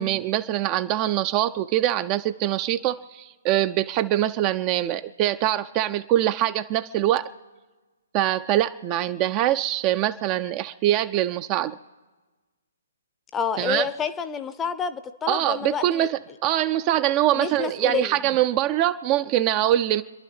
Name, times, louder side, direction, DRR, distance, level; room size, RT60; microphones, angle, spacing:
voice 1, 0.0-7.3 8.1-11.8 13.6-13.9 15.3-20.0, right 13 dB, 25° right, 11 dB, 0.4 m, -23 dB
voice 2, 13.3-16.1 17.3-18.2, left 6 dB, 15° left, 12 dB, 0.6 m, -29 dB
30.0 x 11.5 x 3.4 m, 1.3 s
figure-of-eight pair, 125°, 0 cm